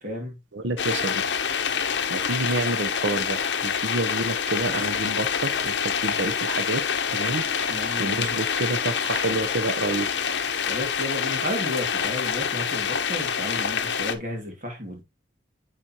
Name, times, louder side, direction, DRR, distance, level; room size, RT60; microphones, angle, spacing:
voice 1, 0.0-0.4 7.7-8.4 10.7-15.0, left 1 dB, 45° right, 2.4 m, -33 dB
voice 2, 0.5-1.2 2.1-6.8 7.1-7.7 8.0-10.1, right 2 dB, 85° right, 0.8 m, -29 dB
sound 1, 0.8-14.2, left 7 dB, 70° left, 0.8 m, -26 dB
9.9 x 4.3 x 2.9 m
head